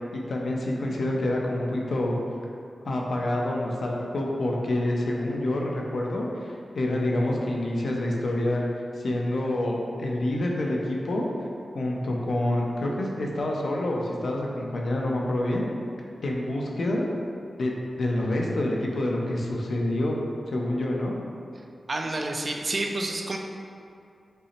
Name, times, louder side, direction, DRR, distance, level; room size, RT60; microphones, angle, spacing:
voice 1, 0.1-2.2 2.8-8.6 9.0-11.3 11.7-15.6 16.2-17.0 17.6-17.7 18.0-20.2 20.5-21.1, left 1 dB, 60° left, -1 dB, 0.6 m, -27 dB
voice 2, 21.9-23.4, right 2 dB, 35° right, 2 dB, 0.3 m, -29 dB
5.4 x 2.0 x 4.2 m, 2.4 s
wide cardioid pair, 180°, 0 cm